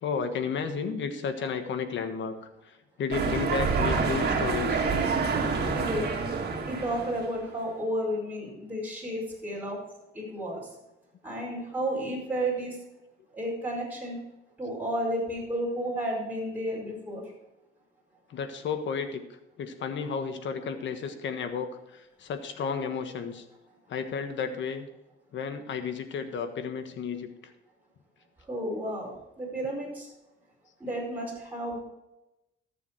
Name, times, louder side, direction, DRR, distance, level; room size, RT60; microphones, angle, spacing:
voice 1, 0.0-2.4 3.0-4.8 18.3-19.2 19.6-21.8 22.2-23.4 23.9-24.9 25.3-27.3, left 6 dB, 70° left, 8 dB, 1.4 m, -32 dB
sound 1, 3.1-7.4, right 4 dB, 55° right, 2.1 m, -27 dB
voice 2, 5.7-6.1 6.6-9.8 10.1-10.7 11.2-12.7 13.3-14.2 14.6-17.2 28.5-29.1 29.4-30.1 30.8-31.8, right 1 dB, 10° right, -4 dB, 4.9 m, -32 dB
13.5 x 7.0 x 4.6 m, 0.95 s
cardioid pair, 90°, 20 cm